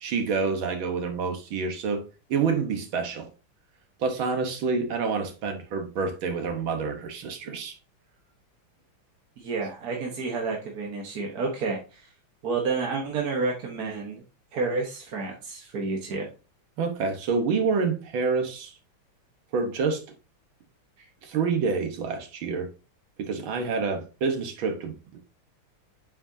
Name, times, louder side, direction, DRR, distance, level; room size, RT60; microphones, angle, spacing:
voice 1, 0.0-2.1 2.3-3.3 4.0-7.8 16.8-18.7 19.5-20.0 21.2-22.7 23.2-25.2, right 5 dB, 75° right, 2.0 m, -27 dB
voice 2, 9.4-12.1 12.4-14.2 14.5-16.3, right 4 dB, 50° right, 1.5 m, -30 dB
8.4 x 4.9 x 2.7 m
omnidirectional pair, 2.2 m